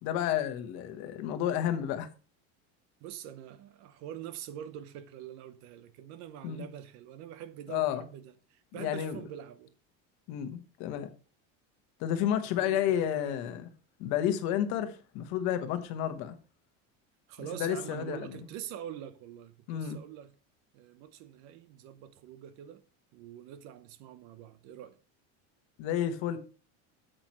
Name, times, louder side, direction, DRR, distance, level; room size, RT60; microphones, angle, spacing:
voice 1, 0.0-2.1 6.4-6.6 7.7-8.0 8.8-9.2 10.3-11.1 12.0-13.7 14.0-16.3 17.5-18.4 19.7-20.0 25.8-26.4, left 10 dB, 50° left, 1.2 m, -31 dB
voice 2, 3.0-9.7 12.5-13.4 17.3-20.3 20.7-22.8 23.1-25.0, right 10 dB, 50° right, 0.9 m, -45 dB
8.7 x 7.7 x 3.1 m
cardioid pair, 175°, 35 cm